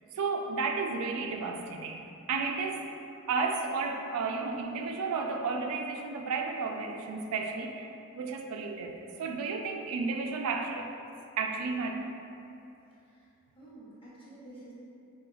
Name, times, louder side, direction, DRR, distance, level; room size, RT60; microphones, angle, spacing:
voice 1, 0.1-2.9 3.3-10.9 11.4-12.1, right 4 dB, 90° right, 4 dB, 0.3 m, -33 dB
voice 2, 13.6-14.7, right 1 dB, 25° left, -9 dB, 0.8 m, -50 dB
4.9 x 2.2 x 2.3 m, 2.8 s
head